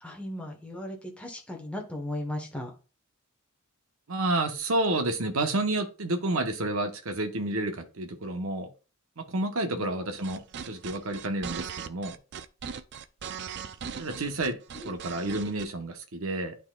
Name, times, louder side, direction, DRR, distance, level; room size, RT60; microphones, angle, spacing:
voice 1, 0.0-2.7 9.8-9.9 14.7-14.8, left 1 dB, 5° left, 0 dB, 1.1 m, -36 dB
voice 2, 4.1-8.7 9.2-12.1 14.0-14.6 14.8-16.6, right 2 dB, 70° right, 6 dB, 1.0 m, -30 dB
sound 1, 10.1-15.7, right 7 dB, 50° right, 0.4 m, -39 dB
11.5 x 4.1 x 2.3 m, 0.33 s
head